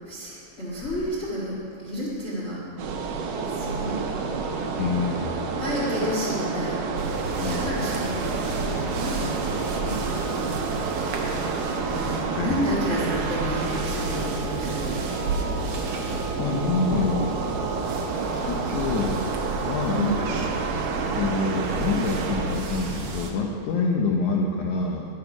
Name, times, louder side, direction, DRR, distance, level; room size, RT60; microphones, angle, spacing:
voice 1, 0.1-2.6 3.5-4.1 5.5-6.8 7.5-8.4 8.6-10.0 11.8-15.0 19.9-20.3, equal, 50° left, -6 dB, 0.7 m, -31 dB
sound 1, 2.8-22.6, right 4 dB, 70° right, 2.1 m, -29 dB
sound 2, 2.9-21.4, right 2 dB, 45° right, 1.4 m, -41 dB
voice 2, 4.8-5.5 7.4-7.7 11.9-12.0 12.3-12.6 14.4-14.5 16.1-17.3 18.3-19.2 19.7-20.1 21.1-25.1, left 4 dB, 85° left, 0 dB, 1.7 m, -27 dB
sound 3, 7.0-23.3, right 3 dB, 90° right, 1.4 m, -34 dB
11.0 x 7.3 x 5.9 m, 2.5 s
omnidirectional pair, 4.5 m